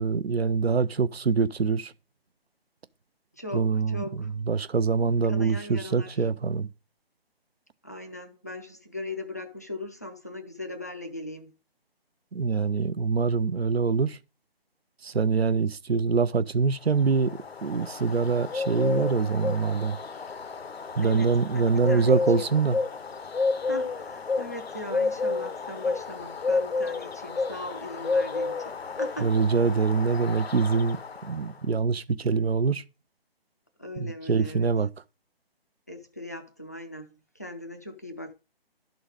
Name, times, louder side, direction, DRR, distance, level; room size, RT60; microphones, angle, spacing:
voice 1, 0.0-1.9 3.5-6.7 12.3-14.2 15.0-20.0 21.0-22.8 29.2-31.0 31.3-32.8 34.0-34.9, right 5 dB, 85° right, 0.7 m, -24 dB
voice 2, 3.3-4.3 5.3-6.3 7.8-11.5 21.0-22.5 23.6-29.3 33.8-34.7 35.9-38.3, left 1 dB, 20° left, 0.4 m, -39 dB
Bird, 16.9-31.6, left 3 dB, 85° left, 0.8 m, -31 dB
11.5 x 4.0 x 4.9 m
figure-of-eight pair, 150°, 30 cm